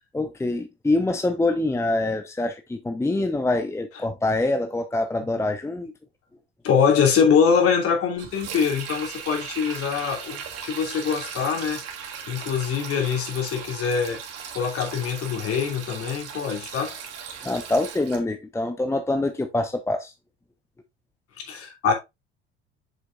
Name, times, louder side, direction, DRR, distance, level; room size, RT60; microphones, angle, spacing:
voice 1, 0.1-5.9 17.4-20.1, left 2 dB, 10° left, 0.9 m, -25 dB
voice 2, 6.6-11.8 12.3-14.2 14.5-16.9 21.5-21.9, left 6 dB, 50° left, 2.8 m, -23 dB
Sink (filling or washing), 8.2-18.2, right 7 dB, 50° right, 2.3 m, -37 dB
7.6 x 6.4 x 2.4 m
figure-of-eight pair, 60°, 30 cm